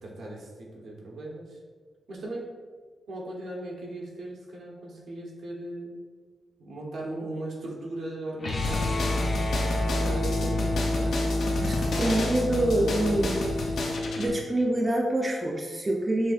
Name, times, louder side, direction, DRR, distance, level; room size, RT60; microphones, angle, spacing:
voice 1, 0.0-1.6 2.1-2.5 3.1-6.0 6.6-9.1 10.0-11.2, right 1 dB, 80° right, -2 dB, 0.9 m, -38 dB
sound 1, 8.4-14.5, left 1 dB, 50° left, 0.7 m, -28 dB
sound 2, 8.6-14.3, left 2 dB, 90° left, 0.6 m, -33 dB
voice 2, 11.6-13.4 14.2-16.3, right 1 dB, 25° right, 0 dB, 0.4 m, -26 dB
6.2 x 2.6 x 2.4 m, 1.5 s
wide cardioid pair, 120°, 0 cm